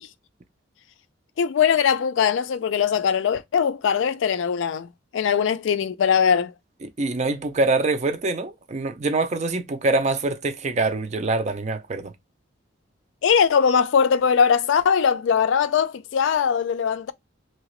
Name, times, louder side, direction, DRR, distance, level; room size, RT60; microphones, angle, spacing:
voice 1, 1.4-4.9 5.1-6.5 13.2-17.1, left 7 dB, 70° left, 0.3 m, -21 dB
voice 2, 6.8-12.1, right 3 dB, 35° right, 0.4 m, -24 dB
2.8 x 2.8 x 3.0 m
head